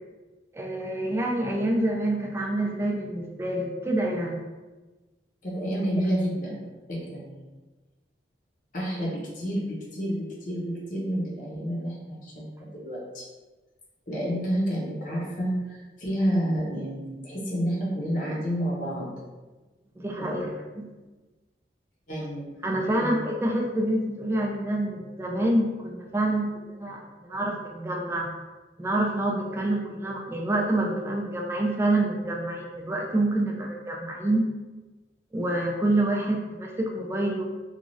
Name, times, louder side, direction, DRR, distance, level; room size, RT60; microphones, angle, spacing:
voice 1, 0.5-4.4 20.0-20.5 20.8-20.9 22.6-28.3 28.8-34.4 35.3-37.5, right 1 dB, 15° right, -1 dB, 0.3 m, -27 dB
voice 2, 5.4-6.5 6.9-7.5 8.7-13.2 14.1-19.1 20.2-20.5 22.1-22.4 22.9-23.2, equal, 50° left, -4 dB, 0.7 m, -29 dB
3.0 x 2.3 x 2.5 m, 1.2 s
head